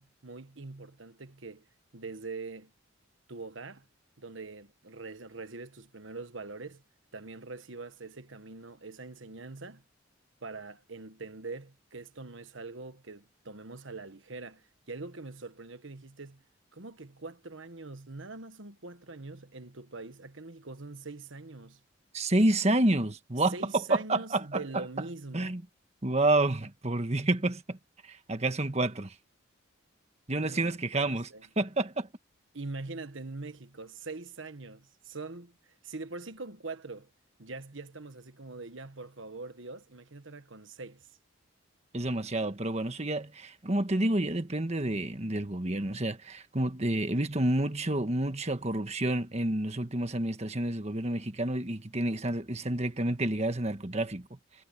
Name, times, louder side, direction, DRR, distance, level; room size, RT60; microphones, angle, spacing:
voice 1, 0.0-1.7 1.9-2.7 3.3-3.9 4.2-6.8 7.1-9.8 10.4-16.4 16.7-21.8 23.5-25.6 30.4-31.4 32.5-35.5 35.8-37.1 37.4-41.1, right 3 dB, 65° right, 1.5 m, -43 dB
voice 2, 22.1-24.8 25.3-25.6 26.0-27.8 28.0-29.1 30.3-31.3 31.6-32.1 41.9-54.3, right 2 dB, 30° right, 1.4 m, -29 dB
head